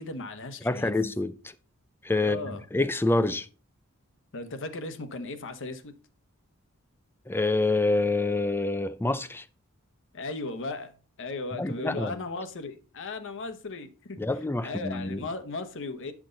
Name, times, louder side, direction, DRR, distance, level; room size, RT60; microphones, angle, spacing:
voice 1, 0.0-0.9 2.2-2.7 4.3-6.0 10.1-14.2 14.6-16.1, left 3 dB, 60° left, 1.0 m, -36 dB
voice 2, 0.6-1.3 2.0-2.4 2.7-3.5 7.3-9.4 11.6-12.1 14.2-15.2, left 2 dB, 10° left, 0.4 m, -26 dB
9.9 x 6.0 x 3.9 m
head